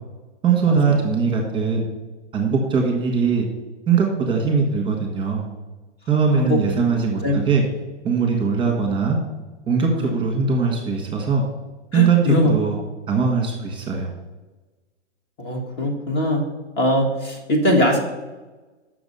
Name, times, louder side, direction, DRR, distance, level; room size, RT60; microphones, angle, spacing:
voice 1, 0.4-1.8 2.3-3.5 3.9-5.4 6.1-7.6 8.0-9.2 9.7-11.4 11.9-12.8 13.1-14.1, right 5 dB, 15° right, 1 dB, 1.4 m, -20 dB
voice 2, 11.9-12.5 15.4-16.4 16.8-18.0, left 1 dB, 30° left, 2 dB, 1.4 m, -21 dB
6.9 x 6.3 x 5.4 m, 1.2 s
hypercardioid pair, 140°, 36 cm